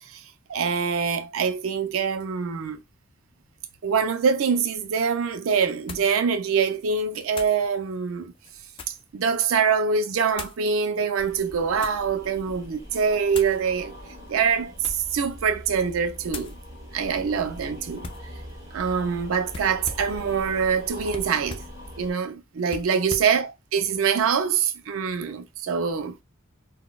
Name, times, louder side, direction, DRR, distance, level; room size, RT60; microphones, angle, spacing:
voice 1, 0.5-2.8 3.8-8.3 8.9-13.9 14.3-16.5 16.9-18.1 18.7-21.6 22.0-26.2, right 6 dB, 85° right, 0.4 m, -24 dB
sound 1, 4.8-4.9 5.9-6.2 7.3-7.6 8.3-9.1 10.3-10.6 11.4-12.1 13.3-13.6 14.7-15.2 15.6-15.9 16.3-16.6 18.0-18.3 19.5-20.2 21.1-21.8 22.7-23.4, left 4 dB, 25° left, 0.3 m, -39 dB
sound 2, 11.2-22.1, equal, 20° right, 1.2 m, -42 dB
3.9 x 2.1 x 2.2 m
head